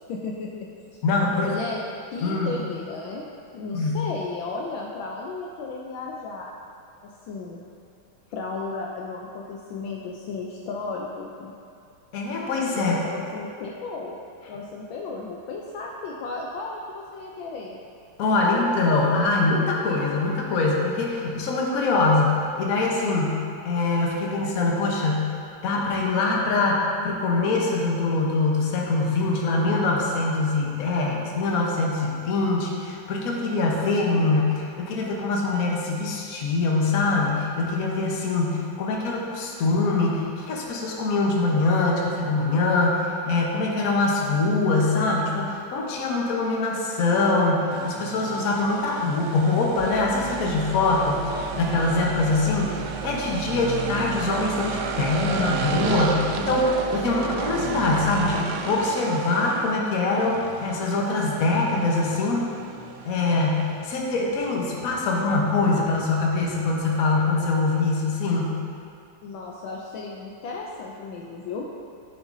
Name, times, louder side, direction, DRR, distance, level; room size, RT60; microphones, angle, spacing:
voice 1, 0.1-0.7 1.3-1.8 2.1-3.3 3.5-6.5 7.0-7.6 8.3-11.5 12.7-14.2 14.5-17.8 69.2-71.7, left 4 dB, 75° left, -1 dB, 1.3 m, -34 dB
voice 2, 1.0-1.5 2.2-2.5 3.7-4.0 12.1-13.0 18.2-25.3 25.6-62.5 63.0-68.6, left 3 dB, 50° left, -1 dB, 1.2 m, -23 dB
sound 1, 47.7-67.6, right 6 dB, 85° right, 0.9 m, -34 dB
sound 2, 49.8-58.3, right 6 dB, 40° right, 1.0 m, -41 dB
9.1 x 7.8 x 2.7 m, 2.6 s
omnidirectional pair, 2.4 m